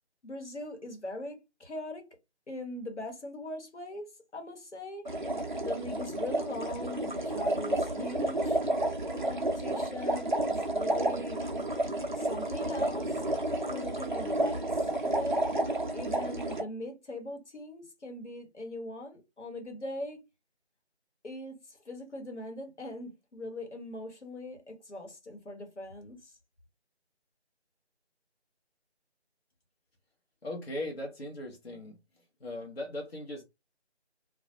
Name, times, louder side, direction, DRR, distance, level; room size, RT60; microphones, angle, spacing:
voice 1, 0.2-2.1 2.5-5.1 5.6-8.6 9.1-11.4 12.1-13.2 13.6-15.5 15.9-20.2 21.2-26.3, left 1 dB, 80° left, 1.1 m, -41 dB
sound 1, 5.1-16.6, right 1 dB, 45° right, 0.4 m, -31 dB
voice 2, 30.4-32.0 32.4-33.4, left 1 dB, 60° left, 0.8 m, -38 dB
2.3 x 2.0 x 2.6 m
figure-of-eight pair, 160°, 34 cm